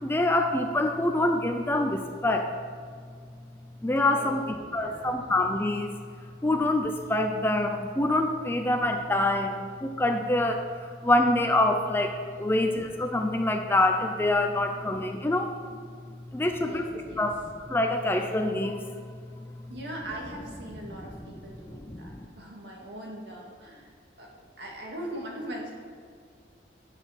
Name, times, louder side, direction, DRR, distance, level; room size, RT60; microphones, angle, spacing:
voice 1, 0.0-2.5 3.8-4.4 4.7-5.9 6.4-10.6 11.0-15.5 16.3-16.9 17.2-17.3 17.7-18.9 21.9-22.3, left 1 dB, 10° left, 4 dB, 0.4 m, -25 dB
voice 2, 4.2-5.2 16.6-17.3 19.7-24.3 24.6-25.7, right 1 dB, 65° right, -2 dB, 2.0 m, -41 dB
8.0 x 6.7 x 5.7 m, 2.2 s
head